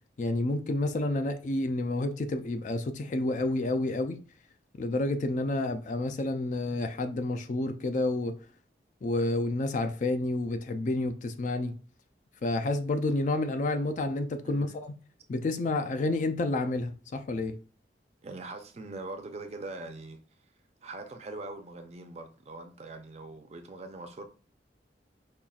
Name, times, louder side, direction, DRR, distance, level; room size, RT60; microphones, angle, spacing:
voice 1, 0.2-4.2 4.8-8.4 9.0-11.7 12.4-14.9 15.3-17.5, left 2 dB, 45° left, 0.4 m, -29 dB
voice 2, 14.4-14.8 18.2-20.2 20.8-24.2, right 2 dB, 40° right, 0.5 m, -42 dB
5.4 x 2.4 x 2.4 m
head